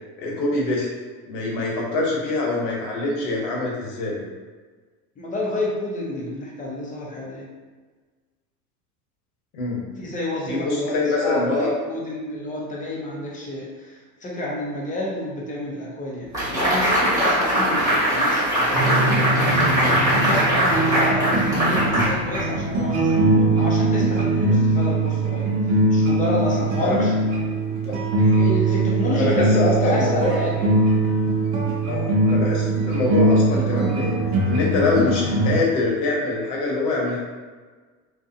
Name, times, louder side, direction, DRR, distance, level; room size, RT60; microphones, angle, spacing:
voice 1, 0.2-0.9 1.3-4.2 9.5-9.8 10.4-11.7 26.7-27.1 27.7-28.0 29.1-30.5 31.8-34.2 34.5-37.2, left 2 dB, 70° left, -3 dB, 1.1 m, -24 dB
voice 2, 5.2-7.5 10.0-13.9 14.2-19.5 20.1-25.5 25.9-27.3 28.2-30.9, left 1 dB, 15° left, -4 dB, 0.7 m, -29 dB
sound 1, 16.3-22.8, right 1 dB, 5° right, 1.3 m, -21 dB
sound 2, 18.7-35.6, right 2 dB, 45° right, 0.8 m, -21 dB
2.5 x 2.3 x 2.6 m, 1.4 s
hypercardioid pair, 100°, 47 cm